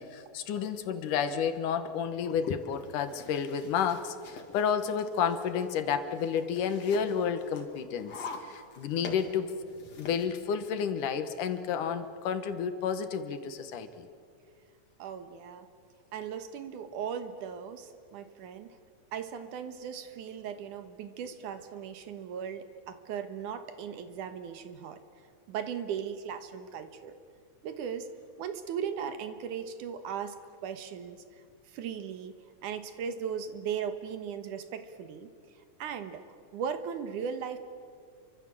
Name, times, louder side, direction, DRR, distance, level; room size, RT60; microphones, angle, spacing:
voice 1, 0.0-9.5 10.0-14.1, left 7 dB, 80° left, 10 dB, 2.9 m, -31 dB
sound 1, 2.5-10.3, left 3 dB, 55° left, 3.5 m, -47 dB
voice 2, 15.0-15.7 16.1-18.7 19.1-25.0 25.5-27.2 27.6-28.1 28.4-30.4 30.6-31.2 31.7-32.3 32.6-35.3 35.8-37.6, right 7 dB, 80° right, 9 dB, 2.8 m, -37 dB
28.0 x 24.5 x 7.6 m, 2.2 s
omnidirectional pair, 3.6 m